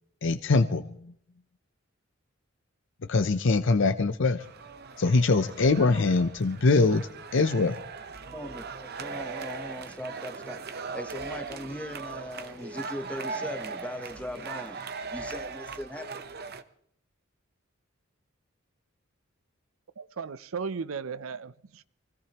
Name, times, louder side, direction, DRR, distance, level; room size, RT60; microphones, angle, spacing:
voice 1, 0.2-1.0 3.1-4.4 5.0-7.8, left 3 dB, 65° left, 0.6 m, -23 dB
sound 1, 4.4-16.6, right 4 dB, 50° right, 0.9 m, -39 dB
voice 2, 8.2-16.3, left 1 dB, 5° left, 1.0 m, -40 dB
voice 3, 20.0-21.8, right 5 dB, 80° right, 0.6 m, -36 dB
24.0 x 17.5 x 3.0 m
head